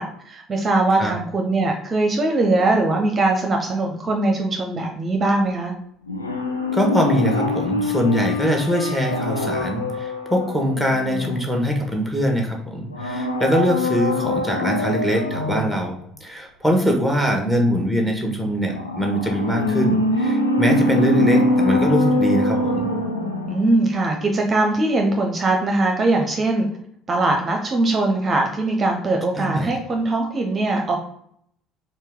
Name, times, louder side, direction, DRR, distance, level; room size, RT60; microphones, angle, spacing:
voice 1, 0.0-5.7 23.5-26.7 27.1-31.0, right 2 dB, 30° right, 2 dB, 0.7 m, -21 dB
sound 1, 6.1-11.8 12.9-15.9 18.7-23.9 24.2-24.3, left 1 dB, 85° left, 0.4 m, -23 dB
voice 2, 6.7-22.9 29.4-29.8, equal, 5° left, 1 dB, 1.2 m, -22 dB
4.5 x 3.1 x 3.5 m, 0.69 s
figure-of-eight pair, 55°, 0 cm